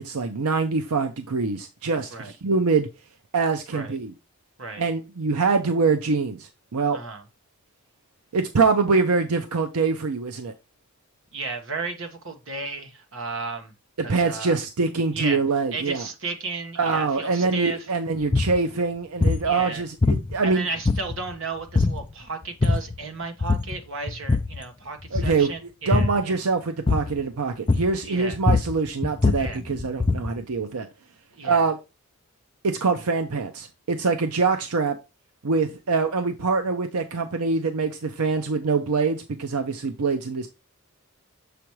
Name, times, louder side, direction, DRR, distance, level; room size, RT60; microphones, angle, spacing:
voice 1, 0.0-2.9 3.3-4.1 4.8-7.0 8.3-10.5 14.1-16.0 16.8-20.7 25.1-25.5 25.9-30.9 31.4-31.8 32.6-35.0 35.4-40.5, right 4 dB, 85° right, 0.7 m, -24 dB
voice 2, 6.9-7.2 11.3-13.7 14.0-14.6 15.1-15.4 15.7-17.9 19.4-19.8 20.4-26.4 28.0-28.4 29.4-29.6 31.3-31.7, right 3 dB, 60° right, 1.3 m, -34 dB
sound 1, 18.3-18.6 19.2-19.5 20.0-20.5 20.8-21.3 21.7-22.1 22.4-23.0 23.4-23.8 24.1-24.6 25.0-25.4 25.9-26.2 26.9-27.2 27.7-28.0 28.3-30.4, left 3 dB, 25° left, 0.4 m, -22 dB
6.9 x 5.0 x 3.1 m
head